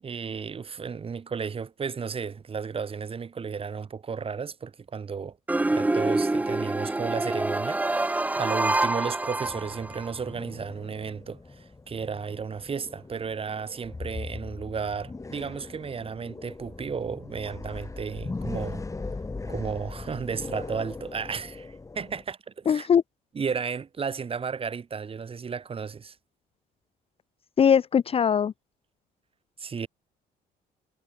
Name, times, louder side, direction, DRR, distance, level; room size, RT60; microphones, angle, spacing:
voice 1, 0.0-5.4 5.7-18.8 19.5-22.9 23.3-26.1 29.6-29.9, right 6 dB, 35° right, 6.4 m, -33 dB
sound 1, 5.5-10.1, right 2 dB, 10° right, 0.7 m, -26 dB
sound 2, 9.4-22.2, left 3 dB, 20° left, 5.1 m, -39 dB
voice 2, 22.7-23.0 27.6-28.5, left 7 dB, 35° left, 0.7 m, -20 dB
cardioid pair, 110°, 17 cm